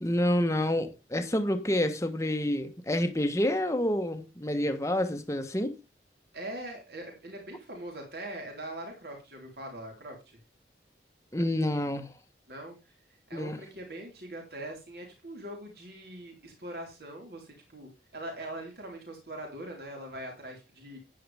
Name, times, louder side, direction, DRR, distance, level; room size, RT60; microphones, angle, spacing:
voice 1, 0.0-5.8 11.3-12.1 13.3-13.6, left 1 dB, 15° left, 1.1 m, -28 dB
voice 2, 6.3-10.4 12.5-12.9 13.3-21.0, right 1 dB, 60° right, 3.9 m, -42 dB
10.5 x 9.5 x 3.5 m
head